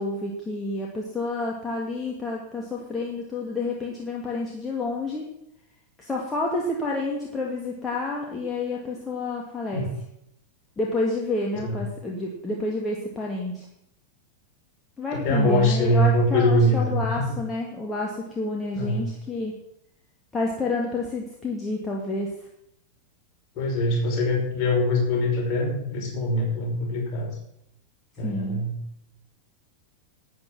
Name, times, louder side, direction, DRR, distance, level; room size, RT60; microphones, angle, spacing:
voice 1, 0.0-5.2 6.0-9.9 10.8-13.7 15.0-19.6 20.3-22.3 28.2-28.6, left 2 dB, 15° left, -2 dB, 2.4 m, -29 dB
voice 2, 15.1-17.4 18.7-19.1 23.6-27.3 28.2-28.8, left 1 dB, 40° left, -1 dB, 5.3 m, -23 dB
12.0 x 8.7 x 6.2 m, 0.79 s
figure-of-eight pair, 90°, 0 cm